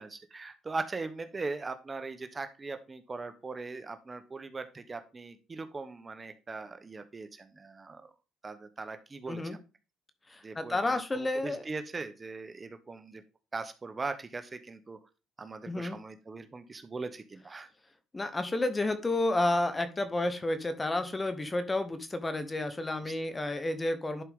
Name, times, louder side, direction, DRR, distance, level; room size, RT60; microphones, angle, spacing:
voice 1, 0.0-8.1 8.4-9.6 10.4-13.2 13.5-15.0 15.4-17.7 23.0-23.1, right 3 dB, 25° right, 9 dB, 0.9 m, -40 dB
voice 2, 10.3-11.6 15.7-16.0 18.1-24.2, left 2 dB, 20° left, 11 dB, 1.1 m, -31 dB
11.0 x 4.6 x 3.7 m, 0.31 s
cardioid pair, 90°, 0 cm